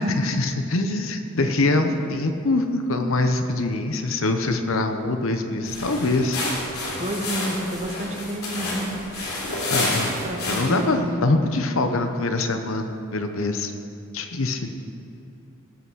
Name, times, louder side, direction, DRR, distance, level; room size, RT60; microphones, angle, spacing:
voice 1, 0.0-6.4 9.7-10.2 10.5-13.7 14.1-14.7, left 2 dB, 65° left, 6 dB, 0.9 m, -24 dB
sound 1, 5.6-10.9, left 2 dB, 80° left, 3.3 m, -29 dB
voice 2, 7.0-9.0 10.2-11.1, equal, 30° right, 1 dB, 1.2 m, -29 dB
17.0 x 5.9 x 6.3 m, 2.6 s
head